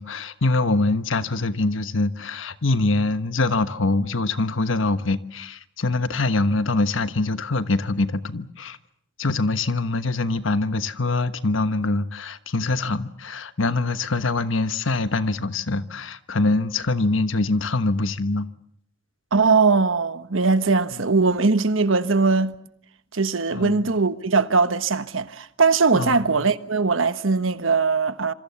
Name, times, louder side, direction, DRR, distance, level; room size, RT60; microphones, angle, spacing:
voice 1, 0.0-8.8 9.2-18.5 23.5-23.9 25.9-26.4, left 2 dB, 80° left, 1.2 m, -24 dB
voice 2, 19.3-22.5 23.1-28.3, right 4 dB, 90° right, 1.3 m, -20 dB
27.0 x 25.5 x 7.0 m
head